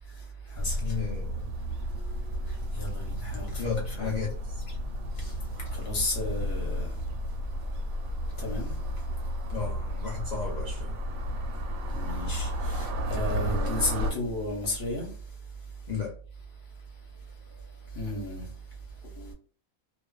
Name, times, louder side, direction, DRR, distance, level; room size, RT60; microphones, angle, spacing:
sound 1, 0.6-14.1, equal, 75° right, 1.0 m, -32 dB
voice 1, 0.8-1.5 3.6-4.7 9.5-11.0 15.9-16.2, left 5 dB, 80° left, 0.3 m, -34 dB
voice 2, 2.8-4.1 5.2-5.3 5.7-6.9 8.4-8.8 11.9-15.1 17.9-18.5 19.0-19.3, left 1 dB, 50° left, 1.0 m, -33 dB
2.4 x 2.4 x 2.2 m
omnidirectional pair, 1.5 m